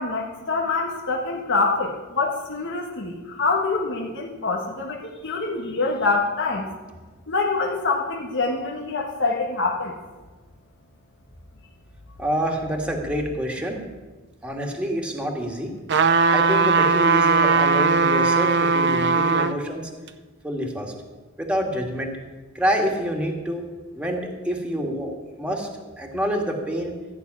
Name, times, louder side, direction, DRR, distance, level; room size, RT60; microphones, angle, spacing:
voice 1, 0.0-6.7 7.3-10.0, left 3 dB, 60° left, 0 dB, 1.6 m, -25 dB
voice 2, 12.2-13.8 14.4-15.7 16.3-19.9 20.4-20.9 21.4-22.1 22.5-23.7 23.9-25.7 26.0-26.9, equal, 5° right, 1 dB, 2.0 m, -27 dB
sound 1, 15.9-19.6 20.1-20.2, right 4 dB, 55° right, 0.7 m, -19 dB
15.0 x 6.3 x 9.6 m, 1.3 s
head